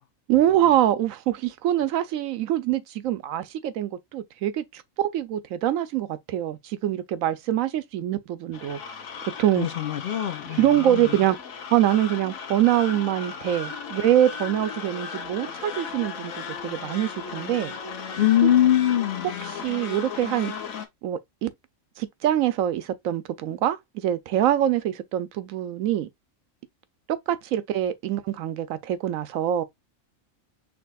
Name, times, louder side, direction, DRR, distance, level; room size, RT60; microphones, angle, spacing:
voice 1, 0.3-8.8 9.4-9.7 10.6-11.4 11.7-17.7 18.4-18.5 19.5-20.5 21.0-21.5 22.0-26.1 27.1-29.6, right 12 dB, 90° right, 1.0 m, -24 dB
sound 1, 8.5-20.9, left 6 dB, 85° left, 1.2 m, -36 dB
voice 2, 9.6-11.0 18.2-19.5, left 11 dB, 55° left, 0.7 m, -22 dB
6.1 x 2.9 x 2.3 m
omnidirectional pair, 1.4 m